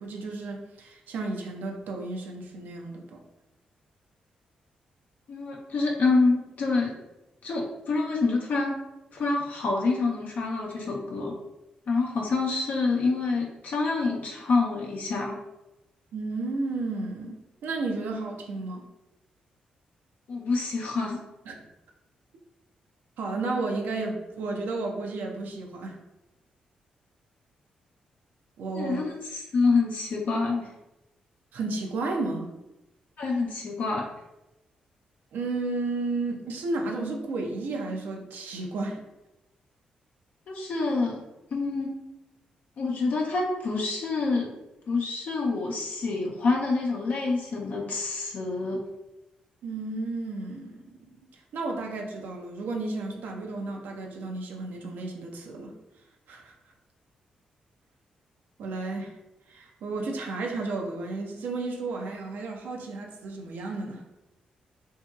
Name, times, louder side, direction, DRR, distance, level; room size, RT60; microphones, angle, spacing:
voice 1, 0.0-3.2 16.1-17.4 17.6-18.8 21.5-21.6 23.2-26.0 28.6-29.1 31.5-32.5 35.3-39.0 49.6-51.1 51.5-55.7 56.3-56.5 58.6-59.1 59.5-64.0, right 3 dB, 70° right, 1 dB, 0.5 m, -32 dB
voice 2, 5.3-6.9 7.4-8.7 9.1-11.4 11.9-15.4 20.3-21.2 28.7-30.7 33.2-34.1 40.5-41.2 41.5-41.9 42.8-44.5 44.9-48.8, left 3 dB, 60° left, -2 dB, 0.5 m, -27 dB
2.8 x 2.7 x 2.3 m, 0.94 s
hypercardioid pair, 45°, 3 cm